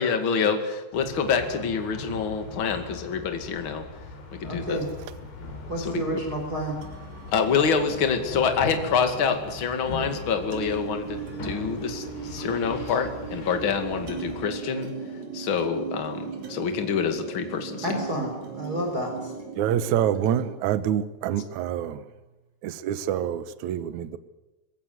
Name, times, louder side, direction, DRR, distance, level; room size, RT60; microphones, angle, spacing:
voice 1, 0.0-3.8 4.4-4.8 5.8-6.0 7.3-14.9 15.3-17.9, left 6 dB, 40° left, 2.4 m, -26 dB
sound 1, 0.9-14.5, left 2 dB, 80° left, 6.0 m, -40 dB
voice 2, 4.4-4.9 5.7-6.8 17.8-19.3, right 1 dB, 25° right, 4.1 m, -30 dB
sound 2, 6.8-20.5, right 6 dB, 50° right, 3.7 m, -39 dB
voice 3, 19.6-22.1 22.6-24.2, right 10 dB, 80° right, 1.7 m, -26 dB
22.0 x 17.0 x 9.5 m
omnidirectional pair, 4.8 m